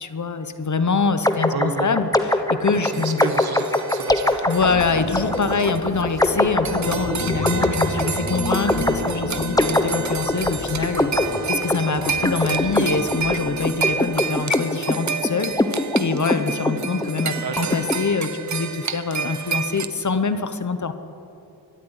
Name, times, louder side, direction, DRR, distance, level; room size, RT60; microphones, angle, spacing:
voice 1, 0.0-3.2 4.5-20.9, left 4 dB, 40° left, 10 dB, 1.0 m, -25 dB
sound 1, 1.2-17.9, left 1 dB, 10° left, 0.9 m, -23 dB
voice 2, 1.5-1.9 2.7-4.5 16.9-17.0 17.4-17.7, right 5 dB, 60° right, 7 dB, 1.7 m, -32 dB
sound 2, 2.7-6.4 6.6-19.9, right 6 dB, 40° right, 0.9 m, -30 dB
sound 3, 4.6-13.7, left 2 dB, 60° left, 2.8 m, -31 dB
23.0 x 12.5 x 10.0 m, 2.8 s
wide cardioid pair, 175°, 43 cm